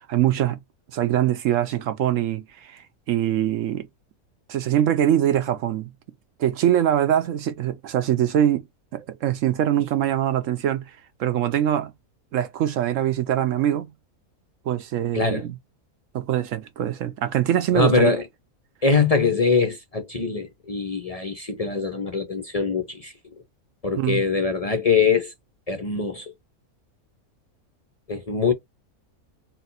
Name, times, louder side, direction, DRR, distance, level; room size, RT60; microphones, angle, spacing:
voice 1, 0.1-0.6 0.9-2.8 3.1-3.9 4.5-5.9 6.4-8.6 8.9-10.8 11.2-11.9 12.3-13.9 14.7-15.5 16.1-18.1 24.0-24.2, right 11 dB, 70° right, 0.9 m, -23 dB
voice 2, 15.1-15.5 17.7-18.2 18.8-23.1 23.8-25.3 25.7-26.3 28.1-28.5, left 4 dB, 50° left, 0.4 m, -22 dB
4.1 x 2.2 x 4.0 m
omnidirectional pair, 1.6 m